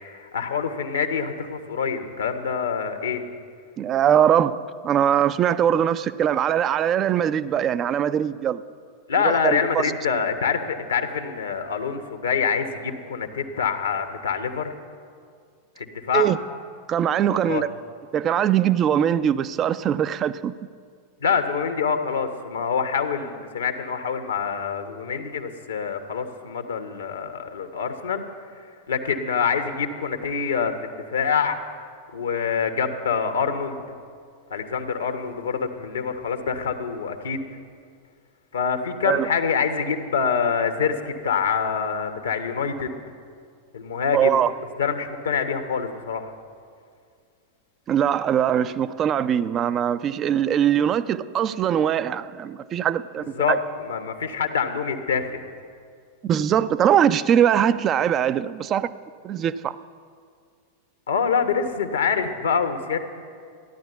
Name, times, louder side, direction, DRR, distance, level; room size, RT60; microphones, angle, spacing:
voice 1, 0.0-3.2 9.1-14.7 15.8-16.3 17.3-17.6 21.2-28.2 28.9-31.6 32.1-33.8 34.5-37.5 38.5-43.0 43.7-44.4 44.8-46.3 53.4-55.4 61.1-63.0, left 6 dB, 70° left, 1.3 m, -25 dB
voice 2, 3.8-8.6 9.2-9.8 16.1-16.4 16.9-17.7 18.1-20.6 39.1-39.3 44.1-44.5 47.9-53.6 56.2-58.9 59.2-59.8, right 9 dB, 30° right, 0.5 m, -21 dB
14.5 x 11.0 x 8.0 m
figure-of-eight pair, 90°, 0 cm